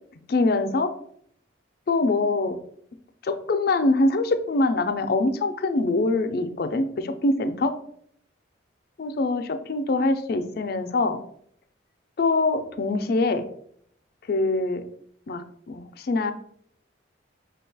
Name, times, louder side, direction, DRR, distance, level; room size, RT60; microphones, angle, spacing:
voice 1, 0.3-0.9 1.9-2.6 3.2-7.7 9.0-11.2 12.2-13.5 14.3-14.8 15.3-16.3, left 2 dB, 50° left, 8 dB, 0.4 m, -24 dB
5.2 x 2.2 x 3.9 m, 0.66 s
head